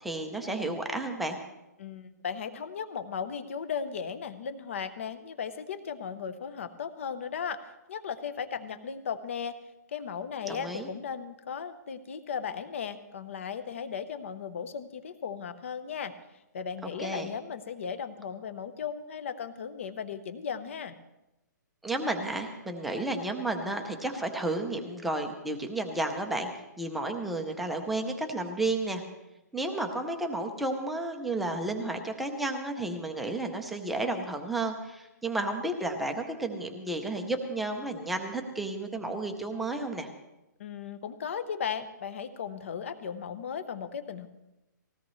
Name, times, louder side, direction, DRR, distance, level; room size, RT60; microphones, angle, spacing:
voice 1, 0.0-1.4 10.5-10.9 16.8-17.3 21.8-26.5 26.8-29.0 29.5-40.1, right 2 dB, ahead, 3 dB, 0.6 m, -32 dB
voice 2, 1.8-7.6 7.9-9.6 9.9-16.1 16.5-21.0 40.6-44.3, left 7 dB, 40° left, 12 dB, 0.9 m, -36 dB
19.5 x 16.5 x 3.2 m, 0.94 s
hypercardioid pair, 180°, 10 cm